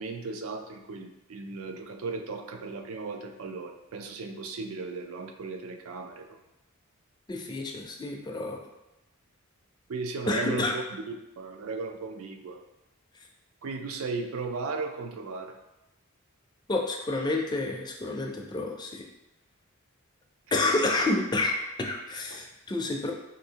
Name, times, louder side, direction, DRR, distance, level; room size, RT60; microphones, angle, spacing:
voice 1, 0.0-6.4 9.9-12.6 13.6-15.5, right 4 dB, 70° right, 5 dB, 0.4 m, -36 dB
voice 2, 7.3-8.6 10.3-10.7 16.7-19.0 20.5-23.1, left 2 dB, 20° left, 1 dB, 0.4 m, -29 dB
3.9 x 2.6 x 2.7 m, 0.93 s
head